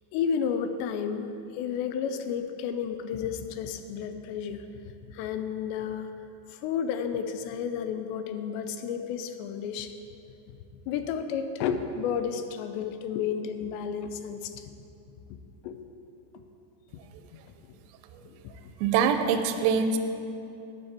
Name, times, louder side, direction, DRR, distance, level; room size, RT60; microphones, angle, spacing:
voice 1, 0.1-4.7 5.1-6.1 6.5-9.9 10.9-14.8 15.6-16.0 16.9-17.0 17.7-17.8 18.2-18.4, left 7 dB, 85° left, 8 dB, 2.8 m, -32 dB
voice 2, 18.8-20.0, right 6 dB, 80° right, 7 dB, 2.4 m, -24 dB
12.0 x 8.9 x 4.2 m, 2.7 s
omnidirectional pair, 5.1 m